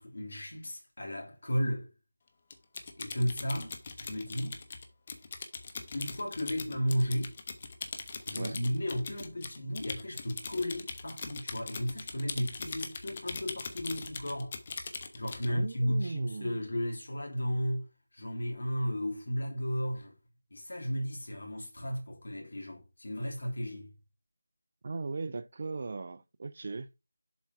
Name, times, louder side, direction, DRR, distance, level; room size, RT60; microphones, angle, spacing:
voice 1, 0.0-1.9 3.0-4.6 5.9-7.3 8.2-14.5 15.1-17.9 18.1-20.1 20.5-23.9, equal, 65° left, 3.2 m, -34 dB
Typing, 2.5-15.5, left 4 dB, 35° left, 1.0 m, -41 dB
voice 2, 15.5-16.6 24.8-26.9, right 3 dB, 45° right, 0.6 m, -38 dB
7.3 x 4.1 x 4.8 m
figure-of-eight pair, 165°, 0 cm